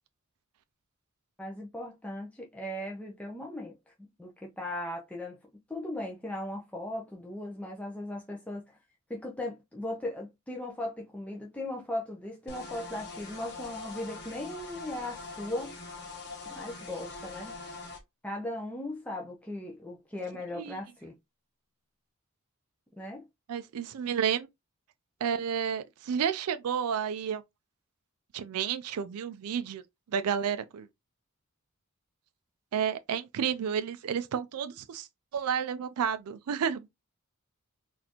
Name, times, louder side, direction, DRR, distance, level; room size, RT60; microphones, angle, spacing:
voice 1, 1.4-3.8 4.2-5.4 5.7-8.8 9.1-15.8 16.5-17.5 18.2-21.1 23.0-23.3, left 1 dB, 5° left, 0.5 m, -38 dB
sound 1, 12.5-18.0, left 3 dB, 50° left, 1.2 m, -43 dB
voice 2, 23.5-24.5 25.2-27.4 28.3-29.8 30.1-30.9 32.7-35.1 35.3-36.9, right 7 dB, 85° right, 0.4 m, -31 dB
4.1 x 2.5 x 2.9 m
head